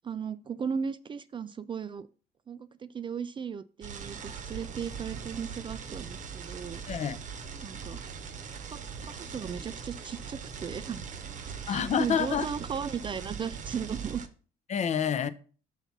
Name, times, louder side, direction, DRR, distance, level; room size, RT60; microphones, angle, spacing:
voice 1, 0.0-2.1 2.5-6.8 7.6-8.0 8.7-8.8 9.1-11.0 11.6-14.2, right 7 dB, 30° right, 0.3 m, -36 dB
sound 1, 3.8-14.3, right 6 dB, 45° right, 0.9 m, -41 dB
voice 2, 6.9-7.2 11.7-12.5 14.7-15.3, left 8 dB, 45° left, 0.6 m, -28 dB
5.7 x 4.0 x 6.0 m
cardioid pair, 110°, 17 cm